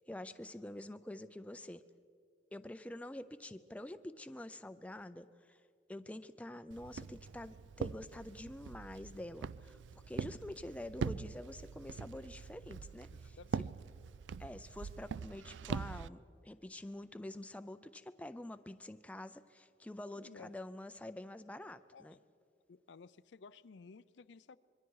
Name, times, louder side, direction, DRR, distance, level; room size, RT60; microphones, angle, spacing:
voice 1, 0.0-1.8 2.5-5.6 5.9-13.4 14.4-22.1, left 1 dB, 10° left, 10 dB, 0.4 m, -47 dB
Walk footsteps, 6.7-16.1, right 5 dB, 90° right, 0.4 m, -43 dB
voice 2, 13.1-13.7 20.1-20.6 21.9-22.2 22.7-24.6, left 4 dB, 80° left, 15 dB, 0.5 m, -56 dB
26.0 x 22.5 x 4.8 m, 2.4 s
head